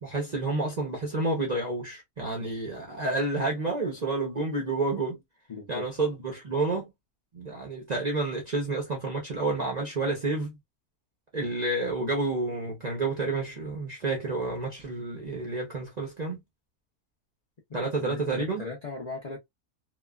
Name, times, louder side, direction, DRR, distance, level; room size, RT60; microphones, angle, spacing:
voice 1, 0.0-5.2 5.7-6.9 7.3-10.6 11.3-16.4 17.7-18.6, right 2 dB, 45° right, 0.6 m, -30 dB
voice 2, 5.5-5.9 17.7-19.4, left 4 dB, 50° left, 0.4 m, -38 dB
3.0 x 2.1 x 2.2 m
omnidirectional pair, 1.6 m